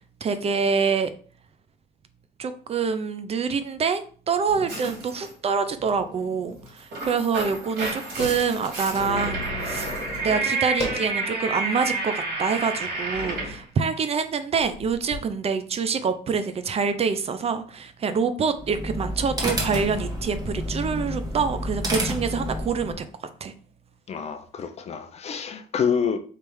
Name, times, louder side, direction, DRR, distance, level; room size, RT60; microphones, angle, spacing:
voice 1, 0.2-1.1 2.4-9.9 10.2-12.1 12.4-23.0 23.4-23.5, right 5 dB, 35° right, 0.5 m, -26 dB
sound 1, 3.8-3.9 4.4-5.0 5.7-6.7 7.0-7.1 7.4-11.2 11.7-11.8 12.5-12.6 13.1-13.6 14.6-15.2, left 1 dB, 25° left, 1.4 m, -36 dB
sound 2, 4.7-5.3 6.7-13.6, right 3 dB, 75° right, 2.2 m, -30 dB
sound 3, 18.5-23.0, equal, 20° right, 1.5 m, -30 dB
voice 2, 24.1-26.2, left 6 dB, 40° left, 0.6 m, -27 dB
3.4 x 3.2 x 4.6 m
cardioid pair, 110°, 17 cm